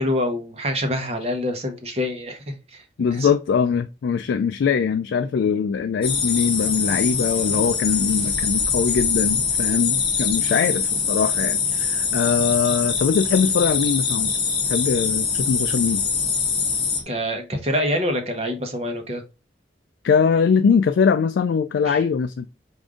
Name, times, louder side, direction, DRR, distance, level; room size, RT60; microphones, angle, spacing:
voice 1, 0.0-2.8 3.1-3.3 17.1-19.2 21.8-22.0, left 1 dB, 35° right, 0.8 m, -26 dB
voice 2, 3.0-14.3 14.7-16.0 20.0-22.5, left 6 dB, 70° left, 0.3 m, -22 dB
sound 1, 6.0-17.0, left 5 dB, 30° left, 0.8 m, -23 dB
4.8 x 2.6 x 3.6 m
head